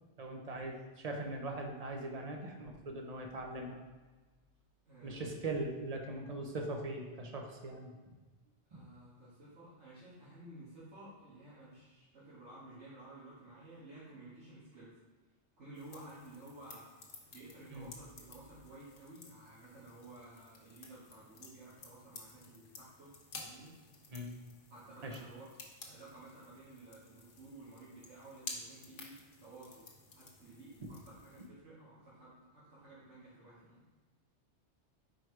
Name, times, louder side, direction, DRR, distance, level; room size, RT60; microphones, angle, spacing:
voice 1, 0.2-3.8 5.0-8.0 8.7-8.8 17.7-17.9 24.1-24.3 25.0-25.2, right 2 dB, 40° right, 2 dB, 0.8 m, -41 dB
voice 2, 4.9-5.3 8.7-14.9 15.6-16.9 17.3-23.7 24.7-25.5 25.9-29.9 30.1-33.8, right 2 dB, 75° right, -11 dB, 2.0 m, -54 dB
sound 1, 15.7-31.5, left 3 dB, 80° left, 1.2 m, -53 dB
4.6 x 4.5 x 4.7 m, 1.3 s
omnidirectional pair, 1.2 m